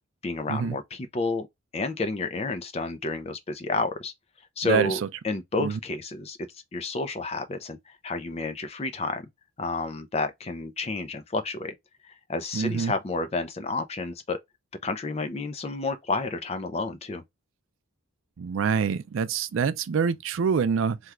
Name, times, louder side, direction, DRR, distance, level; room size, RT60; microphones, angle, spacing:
voice 1, 0.2-1.5 1.7-4.1 4.6-9.3 9.6-11.7 12.0-14.4 14.8-17.2, left 3 dB, 30° left, 0.4 m, -30 dB
voice 2, 4.6-4.9 5.6-5.8 12.5-12.9 18.4-21.0, right 6 dB, 70° right, 0.4 m, -25 dB
3.5 x 2.3 x 2.9 m
head